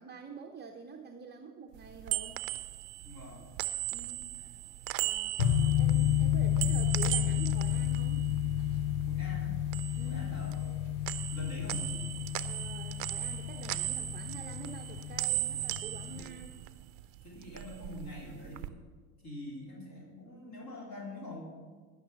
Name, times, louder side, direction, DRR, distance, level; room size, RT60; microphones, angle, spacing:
voice 1, 0.0-2.5 3.9-4.4 5.0-5.4 5.8-8.3 10.0-10.3 12.4-16.6, right 5 dB, 25° right, 3 dB, 0.7 m, -47 dB
sound 1, 1.8-9.1 9.4-10.8 11.0-17.0 17.4-18.7, right 17 dB, 70° right, 0.6 m, -37 dB
voice 2, 3.0-3.5 4.3-4.5 5.6-5.7 9.1-9.6 10.0-10.8 11.3-12.1 16.1-16.3 17.2-18.8 19.2-21.4, left 1 dB, 40° left, -4 dB, 3.3 m, -44 dB
sound 2, 5.4-16.2, left 11 dB, 70° left, 0.9 m, -31 dB
11.5 x 6.1 x 7.0 m, 1.5 s
supercardioid pair, 90°, 44 cm